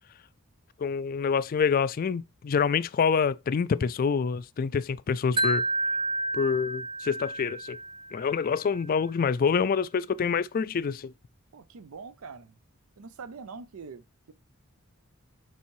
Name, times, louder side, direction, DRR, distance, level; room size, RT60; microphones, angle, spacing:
voice 1, 0.8-5.6 6.3-7.8 8.1-11.1, left 6 dB, 40° left, 0.3 m, -26 dB
Wind chime, 5.4-8.5, right 1 dB, 25° right, 0.4 m, -30 dB
voice 2, 11.5-12.6 13.0-14.3, right 5 dB, 75° right, 0.5 m, -44 dB
7.1 x 4.6 x 3.0 m
head